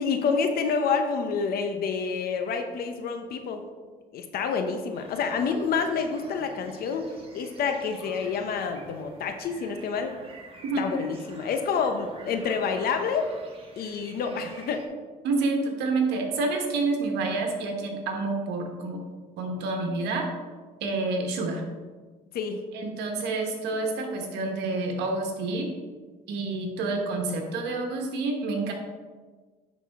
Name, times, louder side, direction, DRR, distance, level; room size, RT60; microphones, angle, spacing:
voice 1, 0.0-3.6 4.1-10.1 10.8-13.3 13.8-14.8 22.3-22.6, left 5 dB, 65° left, 6 dB, 0.8 m, -28 dB
sound 1, 4.9-14.9, right 3 dB, 35° right, 1.3 m, -49 dB
voice 2, 15.2-19.0 19.4-20.3 20.8-21.6 22.7-25.7 26.3-28.7, right 3 dB, 85° right, 2 dB, 1.3 m, -28 dB
10.0 x 4.2 x 3.6 m, 1.4 s
cardioid pair, 110°, 17 cm